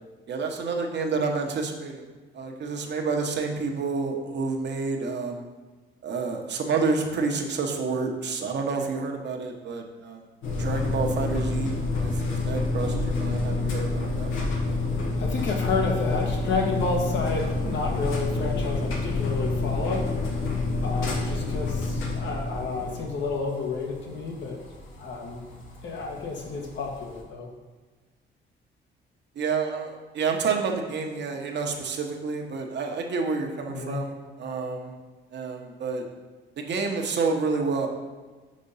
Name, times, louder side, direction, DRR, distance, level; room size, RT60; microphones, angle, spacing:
voice 1, 0.3-2.1 2.3-5.4 6.0-10.2 10.6-14.5 29.3-34.9 35.3-36.1 36.6-37.9, right 4 dB, 60° right, 3 dB, 1.1 m, -29 dB
sound 1, 10.4-27.2, left 3 dB, 90° left, 1.3 m, -28 dB
voice 2, 15.2-20.1 20.8-24.6 25.0-25.4 25.8-27.5 33.7-34.0, left 3 dB, 65° left, 0 dB, 1.5 m, -30 dB
5.2 x 5.0 x 5.6 m, 1.3 s
cardioid pair, 90°, 20 cm